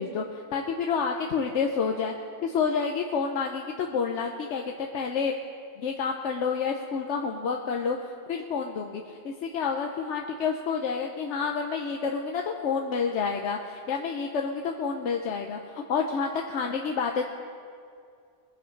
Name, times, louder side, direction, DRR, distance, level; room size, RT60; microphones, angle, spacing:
voice 1, 0.0-2.1 2.4-5.3 5.8-17.2, left 5 dB, 85° left, 2 dB, 1.1 m, -29 dB
21.5 x 7.6 x 5.2 m, 2.3 s
omnidirectional pair, 1.2 m